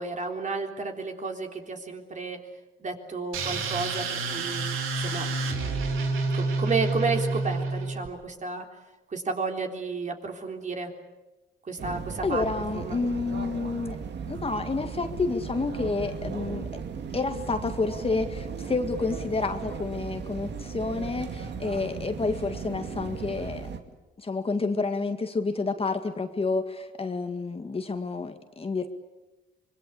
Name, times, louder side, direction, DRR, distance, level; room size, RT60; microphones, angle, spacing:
voice 1, 0.0-2.4 2.8-4.7 5.0-8.7 9.1-10.9 11.6-12.4 12.7-13.0, right 4 dB, 40° right, 3 dB, 3.7 m, -32 dB
sound 1, 3.3-8.1, right 3 dB, 90° right, 3.2 m, -28 dB
sound 2, 11.8-23.8, right 6 dB, 60° right, 2.4 m, -36 dB
voice 2, 12.2-16.7 17.1-23.7 24.2-28.9, left 3 dB, 30° left, 7 dB, 1.9 m, -29 dB
25.5 x 22.0 x 8.6 m, 1.1 s
cardioid pair, 90°, 20 cm